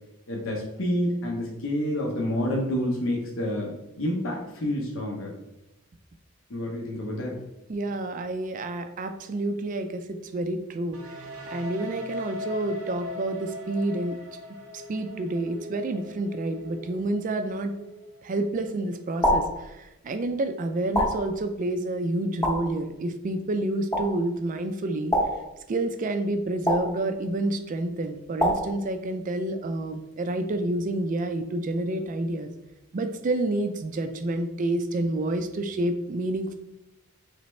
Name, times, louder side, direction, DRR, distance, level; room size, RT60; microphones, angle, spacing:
voice 1, 0.3-5.3 6.5-7.4, left 1 dB, 65° left, -2 dB, 0.7 m, -28 dB
voice 2, 7.7-11.3 11.5-14.4 14.7-17.7 18.2-25.2 25.7-32.5 32.9-36.5, right 2 dB, 35° right, 8 dB, 0.3 m, -29 dB
sound 1, 10.9-18.7, left 2 dB, 80° right, 0.6 m, -40 dB
sound 2, 19.2-19.6 20.9-21.3 22.4-22.8 23.9-24.2 25.1-25.5 26.7-27.0 28.4-28.8, equal, 15° left, 0.8 m, -25 dB
4.1 x 3.3 x 3.1 m, 0.92 s
head